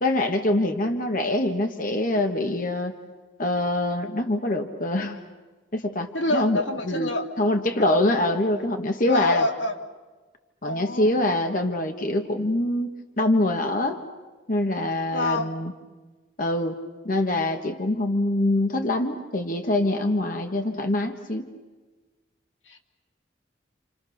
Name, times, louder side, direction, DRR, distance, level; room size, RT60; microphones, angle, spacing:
voice 1, 0.0-2.9 3.4-5.2 5.7-7.1 7.4-9.5 10.6-14.0 14.5-15.7 16.4-16.8 17.0-21.5, left 1 dB, 45° left, 4 dB, 1.6 m, -24 dB
voice 2, 6.1-7.3 9.1-9.8 10.6-11.4 15.1-15.5 22.7-22.8, left 2 dB, 85° left, 3 dB, 2.6 m, -27 dB
30.0 x 28.0 x 6.6 m, 1.3 s
head